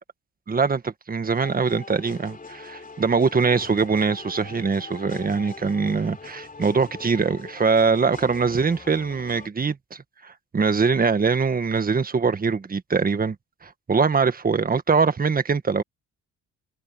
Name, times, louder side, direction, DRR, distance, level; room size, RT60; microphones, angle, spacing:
voice 1, 0.5-9.8 10.2-13.3 13.6-15.8, right 5 dB, 30° right, 1.6 m, -22 dB
sound 1, 1.3-9.5, left 4 dB, 30° left, 4.8 m, -42 dB
cardioid pair, 90°, 30 cm